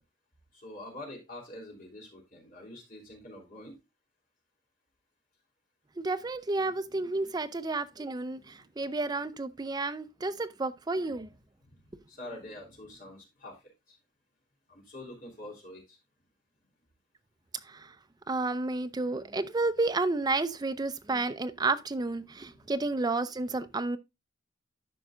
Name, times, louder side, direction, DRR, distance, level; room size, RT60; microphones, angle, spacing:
voice 1, 0.5-3.7 6.6-7.1 7.4-7.5 8.3-8.6 11.0-11.8 12.1-13.6 13.9-14.0 14.7-16.0 22.5-22.7 23.5-23.6, left 1 dB, 45° left, 3.2 m, -46 dB
voice 2, 6.0-11.3 17.7-17.9 18.3-24.0, right 3 dB, 20° right, 0.5 m, -31 dB
12.0 x 5.3 x 2.4 m
head